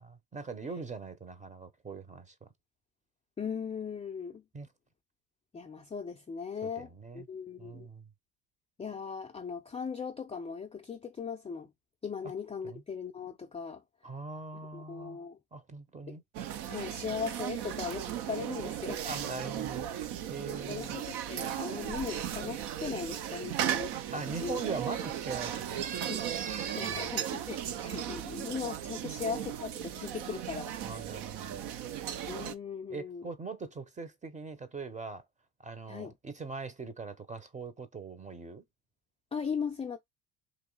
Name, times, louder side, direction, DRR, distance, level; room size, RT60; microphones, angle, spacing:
voice 1, 0.3-2.5 4.5-4.7 6.6-7.3 7.6-8.1 12.2-12.3 12.6-12.8 14.0-15.2 15.5-16.2 19.0-19.9 20.3-21.0 24.1-25.9 26.8-27.1 30.8-31.7 32.9-35.2 35.6-38.6, right 4 dB, 15° right, 0.7 m, -41 dB
voice 2, 3.4-4.4 5.5-7.9 8.8-11.7 12.0-13.8 14.7-15.4 16.1-16.2 16.7-19.0 20.7-24.0 24.3-24.6 26.1-26.2 26.7-30.8 32.3-33.3 35.9-36.1 39.3-40.0, left 6 dB, 15° left, 0.4 m, -38 dB
sound 1, 16.3-32.5, right 10 dB, 55° right, 0.6 m, -36 dB
3.1 x 2.7 x 3.8 m
supercardioid pair, 85°, 47 cm